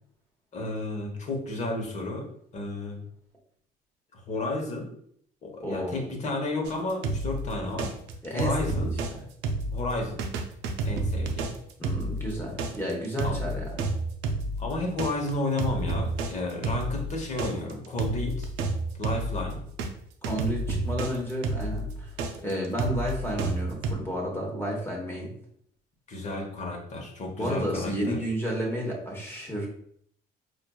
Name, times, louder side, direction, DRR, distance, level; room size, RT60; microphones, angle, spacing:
voice 1, 0.5-2.3 2.5-3.0 4.1-4.9 5.4-7.9 8.3-8.9 9.7-10.2 10.8-11.5 13.2-13.4 14.6-18.5 19.0-19.6 26.1-28.2, left 2 dB, 45° left, 1 dB, 1.0 m, -32 dB
voice 2, 5.6-6.1 8.2-9.2 11.8-13.8 20.2-22.1 22.4-25.3 27.4-29.7, equal, 15° left, -1 dB, 1.1 m, -31 dB
sound 1, 6.6-9.1 9.4-19.9 20.2-23.9, right 2 dB, 85° right, 0.5 m, -30 dB
4.4 x 2.5 x 2.3 m, 0.65 s
cardioid pair, 110°, 17 cm